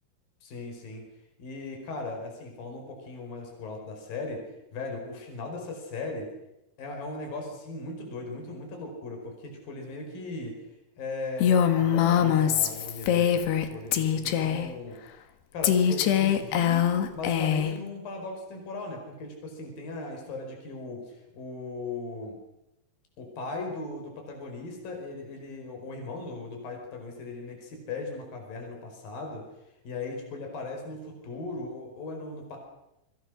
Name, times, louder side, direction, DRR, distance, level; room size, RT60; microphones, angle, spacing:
voice 1, 0.4-1.1 1.4-4.4 4.7-6.3 6.8-10.6 11.0-13.4 13.7-15.0 15.5-16.9 17.1-22.4 23.2-29.5 29.8-32.6, left 3 dB, 60° left, 3 dB, 6.7 m, -38 dB
Female speech woman speaking, 11.4-13.7 13.9-14.7 15.6-17.8, left 9 dB, 85° left, 3.8 m, -23 dB
28.0 x 24.5 x 6.4 m, 0.88 s
omnidirectional pair, 4.7 m